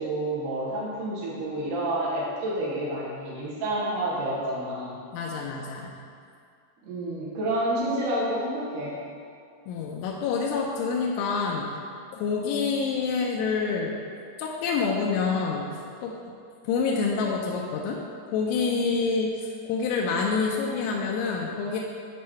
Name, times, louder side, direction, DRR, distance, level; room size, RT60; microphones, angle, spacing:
voice 1, 0.0-5.0 6.8-9.0, right 1 dB, 70° right, -6 dB, 2.0 m, -29 dB
voice 2, 5.1-6.0 9.7-11.8 12.1-14.0 14.4-15.7 16.0-16.2 16.6-18.0 18.3-21.8, left 5 dB, 80° left, -1 dB, 2.8 m, -27 dB
8.5 x 3.1 x 5.5 m, 2.3 s
omnidirectional pair, 5.6 m